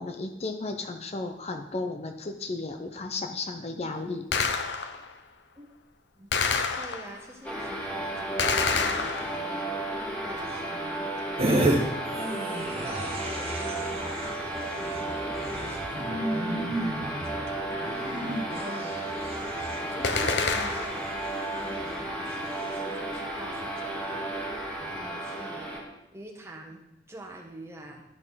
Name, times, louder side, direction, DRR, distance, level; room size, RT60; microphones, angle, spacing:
voice 1, 0.0-4.2, left 3 dB, 35° left, 5 dB, 0.6 m, -34 dB
Gunshot gunfire, 4.3-5.1 6.3-7.3 8.4-9.7 20.0-21.1, left 5 dB, 75° left, 0.8 m, -28 dB
voice 2, 6.7-9.8 10.2-12.4 12.7-14.4 14.8-16.3 16.7-18.2 18.4-19.0 19.8-21.2 21.5-24.3 24.8-25.7 26.1-28.0, right 1 dB, 15° right, 0 dB, 1.3 m, -46 dB
sound 1, 7.4-25.8, right 1 dB, 5° left, 1.8 m, -34 dB
sound 2, 11.4-11.8 12.0-22.0 22.4-22.8, right 1 dB, 35° right, 1.4 m, -32 dB
12.0 x 4.4 x 5.6 m, 0.90 s
head